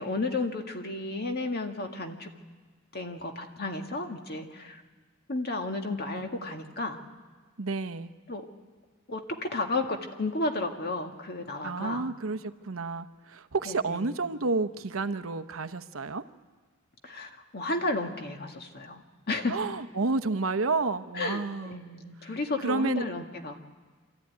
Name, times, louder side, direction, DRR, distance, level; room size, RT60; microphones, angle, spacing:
voice 1, 0.0-2.3 2.9-4.8 5.3-7.0 8.3-8.4 9.1-12.1 13.7-14.2 17.0-19.6 21.1-23.6, left 2 dB, 50° left, 4 dB, 1.9 m, -33 dB
voice 2, 7.6-8.1 11.6-12.4 12.6-16.2 19.5-21.7 22.6-23.2, right 3 dB, 85° right, 11 dB, 0.9 m, -30 dB
25.5 x 14.0 x 9.5 m, 1.4 s
head